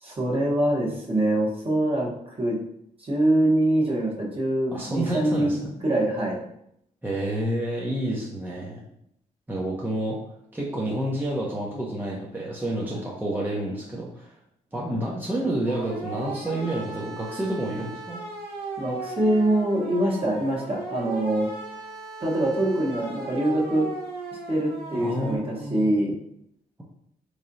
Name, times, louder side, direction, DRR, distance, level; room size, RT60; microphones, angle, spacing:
voice 1, 0.0-2.6 3.0-5.6 5.8-6.4 12.9-13.0 14.8-15.0 18.8-21.5 22.2-23.9 24.5-26.2, right 1 dB, 35° right, -4 dB, 1.3 m, -24 dB
voice 2, 4.7-5.7 7.0-8.8 9.5-10.2 10.5-14.3 14.7-18.2 24.9-25.9, right 1 dB, 10° right, -4 dB, 0.8 m, -29 dB
sound 1, 15.6-25.4, right 3 dB, 85° right, 0.8 m, -37 dB
3.6 x 3.2 x 2.7 m, 0.73 s
supercardioid pair, 60°, 16 cm